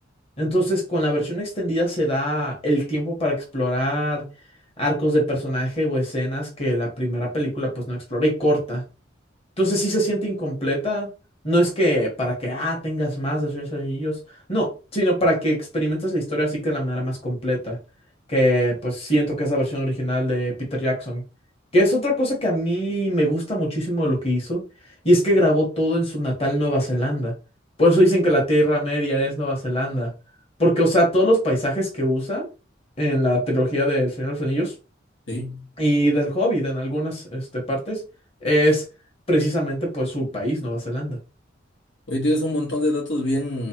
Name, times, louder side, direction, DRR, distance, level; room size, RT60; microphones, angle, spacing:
voice 1, 0.4-4.2 4.8-8.8 9.6-11.1 11.4-14.2 14.5-17.8 18.3-21.2 21.7-24.6 25.0-27.3 27.8-30.1 30.6-32.5 33.0-34.7 35.8-38.0 38.4-38.8 39.3-41.2, equal, 30° left, 1.3 m, -22 dB
voice 2, 35.3-35.6 42.1-43.7, left 1 dB, 75° left, 1.3 m, -24 dB
3.7 x 3.2 x 2.9 m
head